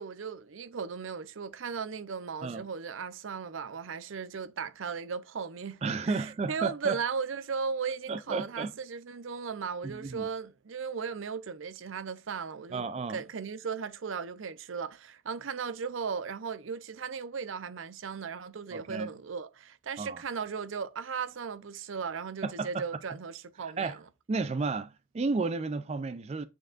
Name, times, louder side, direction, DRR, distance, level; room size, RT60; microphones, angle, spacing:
voice 1, 0.0-12.8 13.1-24.0, right 6 dB, 80° right, 0.6 m, -37 dB
voice 2, 5.8-7.0 8.1-8.7 9.8-10.3 12.7-13.2 18.7-19.1 20.0-20.2 22.4-22.8 23.6-24.0 24.3-26.5, right 4 dB, 35° right, 0.4 m, -32 dB
8.9 x 4.5 x 2.4 m
head